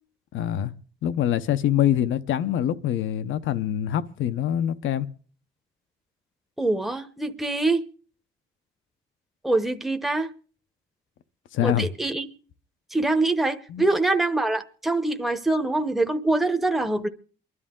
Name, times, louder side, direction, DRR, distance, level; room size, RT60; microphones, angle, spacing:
voice 1, 0.3-0.7 1.0-5.1 11.5-11.9 13.7-13.9, left 11 dB, 80° left, 0.8 m, -24 dB
voice 2, 6.6-7.9 9.4-10.3 11.6-12.3 12.9-17.1, right 2 dB, ahead, 0.9 m, -24 dB
28.5 x 11.0 x 3.7 m
cardioid pair, 90°, 20 cm